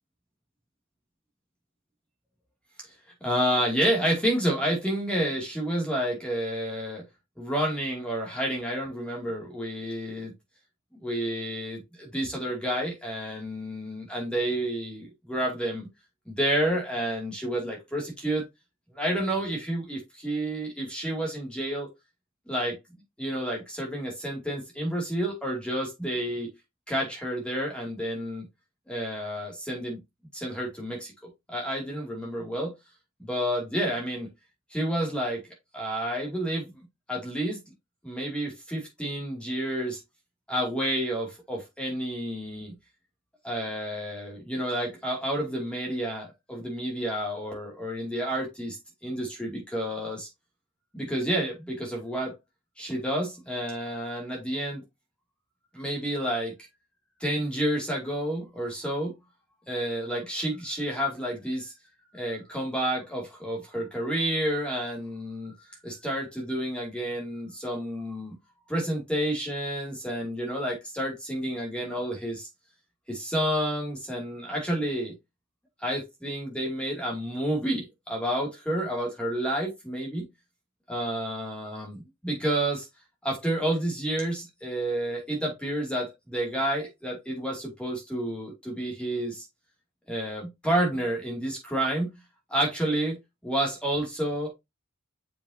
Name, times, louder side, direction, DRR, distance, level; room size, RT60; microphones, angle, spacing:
voice 1, 3.2-7.0 7.4-10.3 11.0-15.9 16.3-18.4 19.0-21.9 22.5-22.8 23.2-26.5 26.9-28.5 28.9-30.0 30.3-31.1 31.5-32.7 33.2-34.3 34.7-35.4 35.7-36.6 37.1-37.6 38.0-40.0 40.5-42.7 43.4-50.3 50.9-52.3 52.8-54.8 55.7-56.5 57.2-59.1 59.7-61.7 62.1-65.5 65.8-68.4 68.7-72.5 73.1-75.1 75.8-80.2 80.9-82.9 83.2-89.4 90.1-92.1 92.5-93.2 93.4-94.5, right 1 dB, 5° left, 2.5 m, -30 dB
7.0 x 5.4 x 2.8 m
head